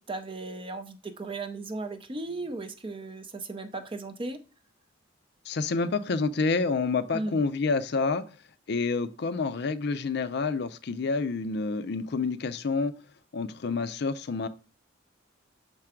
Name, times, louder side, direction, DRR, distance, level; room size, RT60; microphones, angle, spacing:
voice 1, 0.0-4.4 7.1-7.4, right 2 dB, 25° right, 9 dB, 0.5 m, -36 dB
voice 2, 5.5-8.2 8.7-12.9 13.3-14.5, left 4 dB, 55° left, 12 dB, 0.4 m, -28 dB
6.6 x 4.5 x 3.6 m, 0.34 s
head